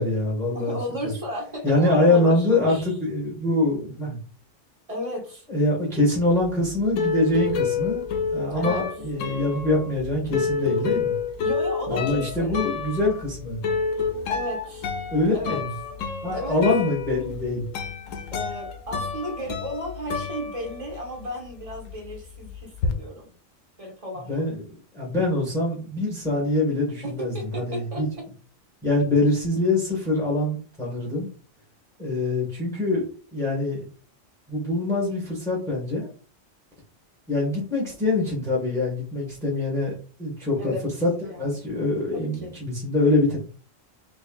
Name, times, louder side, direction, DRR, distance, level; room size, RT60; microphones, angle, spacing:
voice 1, 0.0-0.8 1.0-1.1 1.6-4.2 5.5-8.0 8.3-11.2 11.9-13.6 15.1-15.6 16.2-17.7 24.3-24.6 24.9-28.1 28.8-31.3 32.0-33.9 34.5-36.1 37.3-39.9 40.2-40.7 41.0-41.1 41.4-43.4, left 2 dB, ahead, -4 dB, 1.4 m, -24 dB
voice 2, 0.5-3.0 4.9-5.5 8.5-8.8 11.4-12.5 14.3-14.9 15.3-15.6 16.3-16.6 18.3-23.3 23.8-24.5 27.0-28.0 40.6-40.8 41.2-41.7 42.1-42.6, equal, 25° right, 0 dB, 1.2 m, -34 dB
sound 1, 6.4-21.2 21.5-22.9, left 5 dB, 80° left, 1.0 m, -29 dB
4.3 x 3.2 x 2.4 m, 0.39 s
omnidirectional pair, 1.4 m